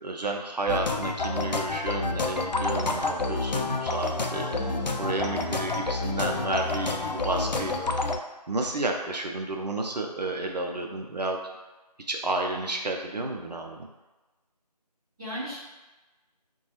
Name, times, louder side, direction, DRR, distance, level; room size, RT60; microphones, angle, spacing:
voice 1, 0.0-4.6 5.0-7.7 8.5-11.4 12.1-13.9, right 2 dB, 75° right, 2 dB, 0.5 m, -31 dB
sound 1, 0.7-8.2, left 3 dB, 90° left, 0.4 m, -29 dB
voice 2, 4.5-5.0 15.2-15.6, right 1 dB, 5° right, -20 dB, 0.9 m, -36 dB
3.9 x 2.3 x 2.9 m, 1.1 s
figure-of-eight pair, 165°, 21 cm